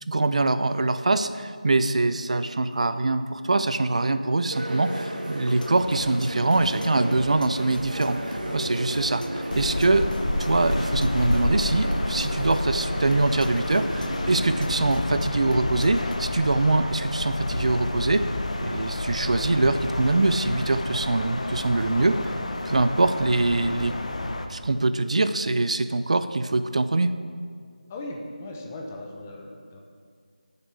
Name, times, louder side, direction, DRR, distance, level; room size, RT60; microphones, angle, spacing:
voice 1, 0.1-8.2 8.5-10.1 10.4-18.2 18.6-22.2 22.7-23.9 24.5-27.1, right 2 dB, 50° right, 11 dB, 0.5 m, -23 dB
sound 1, 4.5-14.8, right 1 dB, 75° right, 1.7 m, -34 dB
sound 2, 5.5-16.2, left 1 dB, 90° left, 0.8 m, -40 dB
sound 3, 9.5-24.5, left 2 dB, 50° left, 0.8 m, -29 dB
voice 2, 27.9-29.8, left 1 dB, 15° left, 0 dB, 0.8 m, -38 dB
17.5 x 6.8 x 3.4 m, 2.1 s
figure-of-eight pair, 170°, 4 cm